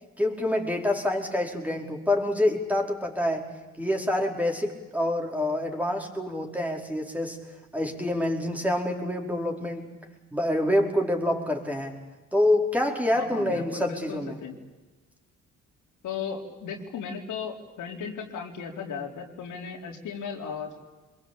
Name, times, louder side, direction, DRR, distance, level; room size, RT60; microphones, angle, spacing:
voice 1, 0.2-3.5 3.8-7.4 7.7-10.0 10.3-12.0 12.3-14.3, left 1 dB, 5° right, 1 dB, 4.9 m, -26 dB
voice 2, 13.1-14.6 16.0-20.7, left 6 dB, 80° left, 1 dB, 4.4 m, -36 dB
26.0 x 22.5 x 8.9 m, 1.2 s
cardioid pair, 90°, 30 cm